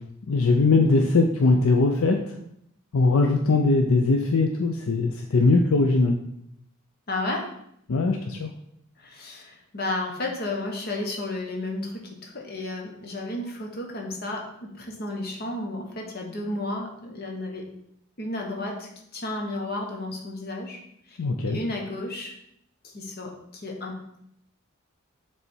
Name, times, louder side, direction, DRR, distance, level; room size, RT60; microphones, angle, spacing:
voice 1, 0.3-2.3 2.9-6.2 7.9-8.5 21.2-21.6, left 3 dB, 70° left, 3 dB, 0.5 m, -21 dB
voice 2, 7.1-7.5 9.0-17.7 18.2-20.8 21.1-21.2 21.5-22.3 22.8-23.9, left 2 dB, 45° left, 1 dB, 1.1 m, -32 dB
6.8 x 3.4 x 4.4 m, 0.74 s
head